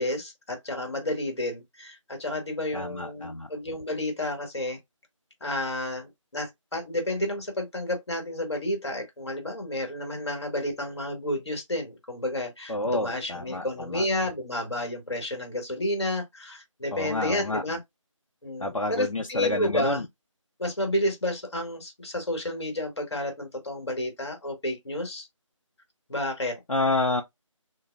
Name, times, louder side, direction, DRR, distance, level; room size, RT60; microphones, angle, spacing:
voice 1, 0.0-4.8 5.4-17.8 18.4-20.0 20.6-25.3 26.1-26.6, left 1 dB, 55° left, 1.8 m, -31 dB
voice 2, 2.7-3.5 12.7-14.0 16.9-17.6 18.6-20.0 26.7-27.2, left 2 dB, 80° left, 0.8 m, -28 dB
6.4 x 2.2 x 2.3 m
figure-of-eight pair, 165°, 17 cm